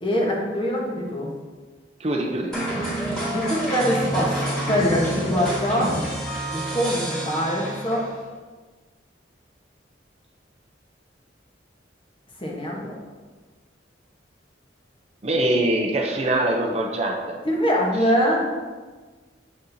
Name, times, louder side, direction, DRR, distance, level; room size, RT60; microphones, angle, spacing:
voice 1, 0.0-1.3 3.3-6.0 6.5-8.0 12.4-12.9 17.4-18.5, equal, 25° left, -2 dB, 1.1 m, -23 dB
voice 2, 2.0-2.6 15.2-17.4, right 1 dB, 35° right, 1 dB, 0.6 m, -23 dB
sound 1, 2.5-8.2, right 1 dB, 5° left, 2.1 m, -28 dB
7.1 x 6.4 x 2.7 m, 1.4 s
head